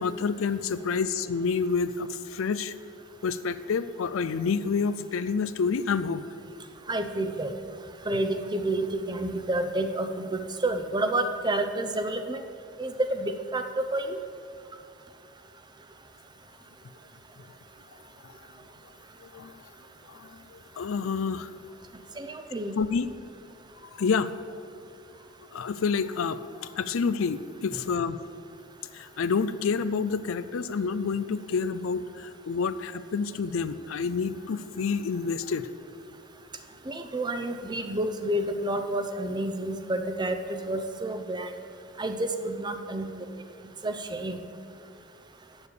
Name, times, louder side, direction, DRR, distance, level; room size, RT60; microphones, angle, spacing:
voice 1, 0.0-2.7 3.2-6.2 18.2-18.3 19.2-19.6 20.1-21.5 22.8-23.1 23.8-24.4 25.5-28.2 28.9-35.7, left 5 dB, 85° left, 13 dB, 0.5 m, -28 dB
voice 2, 6.9-7.5 8.1-12.4 12.8-13.6 13.9-14.2 22.2-22.8 36.9-41.5 42.0-43.1 43.8-44.4, right 1 dB, 20° right, 7 dB, 0.6 m, -29 dB
8.2 x 7.0 x 8.5 m, 2.3 s
head